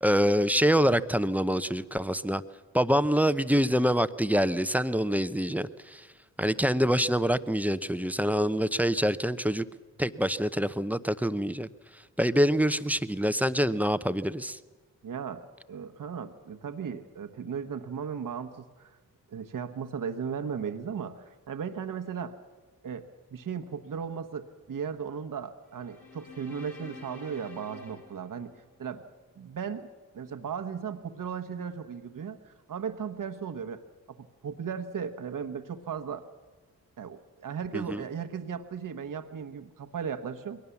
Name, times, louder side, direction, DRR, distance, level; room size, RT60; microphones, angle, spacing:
voice 1, 0.0-2.4 2.7-6.1 6.4-9.6 10.0-11.7 12.2-14.6 37.7-38.0, equal, 5° right, 13 dB, 0.8 m, -25 dB
voice 2, 15.0-19.0 19.3-22.4 22.8-28.5 28.8-29.0 29.4-29.9 30.1-33.8 34.1-36.2 37.0-40.6, right 7 dB, 60° right, 7 dB, 1.2 m, -36 dB
sound 1, 25.7-29.1, left 3 dB, 75° left, 5.0 m, -49 dB
21.5 x 18.0 x 7.1 m, 1.3 s
supercardioid pair, 45°, 36 cm